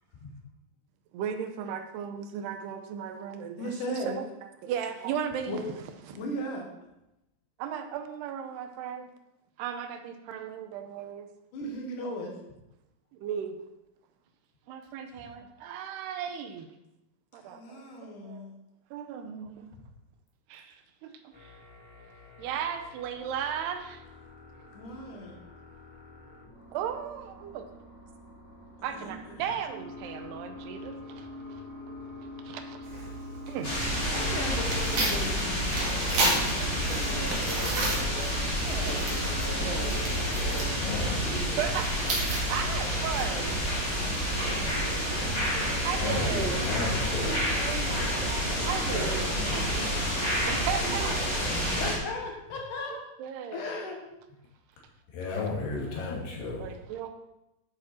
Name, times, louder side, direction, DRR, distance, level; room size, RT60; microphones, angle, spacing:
voice 1, 1.1-4.3 4.6-5.6 6.1-6.2 7.6-9.1 9.6-11.3 13.1-13.6 14.7-16.7 17.3-18.5 18.9-19.7 20.5-21.6 22.4-24.0 26.7-27.7 28.8-31.3 32.4-32.8 33.5-33.8 38.6-39.1 39.6-40.1 40.4-41.1 41.6-43.6 44.4-46.9 47.2-51.6 53.2-53.7 56.6-57.1, right 8 dB, 85° right, 7 dB, 3.0 m, -36 dB
voice 2, 3.6-4.2 5.5-5.6 6.1-6.7 11.5-12.3 17.4-18.5 24.7-25.4 28.8-29.5 34.1-37.9 51.5-53.0 53.5-54.0, left 1 dB, 60° left, 1 dB, 2.8 m, -37 dB
sound 1, 21.3-37.8, left 2 dB, ahead, 3.2 m, -46 dB
Tearing, 32.8-43.6, right 2 dB, 50° right, 3.1 m, -34 dB
sound 2, 33.6-51.9, equal, 20° left, 1.7 m, -29 dB
voice 3, 40.8-41.6 46.0-47.4 55.1-56.7, left 3 dB, 80° left, -3 dB, 4.5 m, -33 dB
11.0 x 8.0 x 4.4 m, 0.89 s
omnidirectional pair, 4.6 m